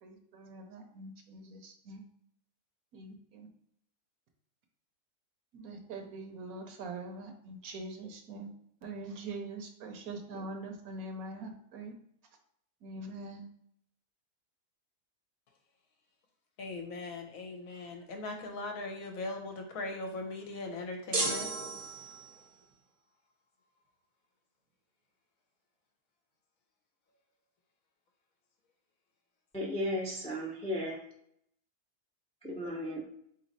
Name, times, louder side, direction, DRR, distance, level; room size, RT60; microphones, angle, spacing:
voice 1, 0.0-2.0 2.9-3.5 5.5-8.5 8.8-11.9 12.8-13.5, right 2 dB, 65° right, 4 dB, 1.1 m, -43 dB
voice 2, 16.6-21.5, left 2 dB, 65° left, 3 dB, 1.0 m, -39 dB
sound 1, 21.1-22.5, right 2 dB, 30° right, 0.7 m, -34 dB
voice 3, 29.5-31.0 32.4-33.0, equal, 10° left, -2 dB, 0.4 m, -35 dB
3.9 x 3.1 x 4.1 m, 0.72 s
omnidirectional pair, 1.7 m